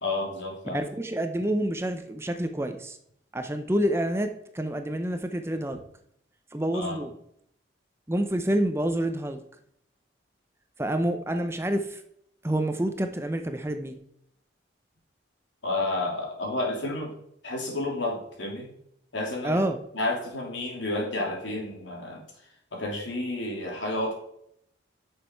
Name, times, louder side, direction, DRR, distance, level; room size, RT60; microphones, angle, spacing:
voice 1, 0.0-0.8 6.7-7.0 15.6-17.1 17.4-18.7 19.1-19.6 19.9-22.2 22.7-24.1, left 2 dB, 90° left, -1 dB, 3.0 m, -30 dB
voice 2, 0.7-3.0 3.3-5.8 6.5-7.1 8.1-9.4 10.8-12.0 12.4-14.0 19.4-19.8, right 1 dB, 15° right, 7 dB, 0.6 m, -28 dB
9.5 x 6.2 x 4.6 m, 0.73 s
head